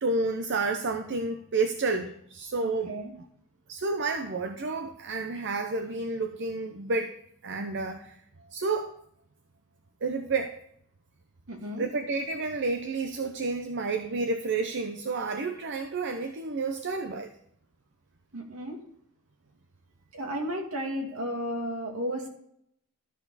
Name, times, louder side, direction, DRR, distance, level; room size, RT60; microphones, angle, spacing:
voice 1, 0.0-2.9 3.7-7.1 7.4-8.2 8.5-8.9 10.0-10.6 11.8-17.3, right 3 dB, 55° right, 7 dB, 0.7 m, -30 dB
voice 2, 2.6-3.1 11.5-11.9 18.3-18.8 20.1-22.3, equal, 70° right, 1 dB, 2.4 m, -33 dB
13.0 x 6.8 x 4.1 m, 0.70 s
head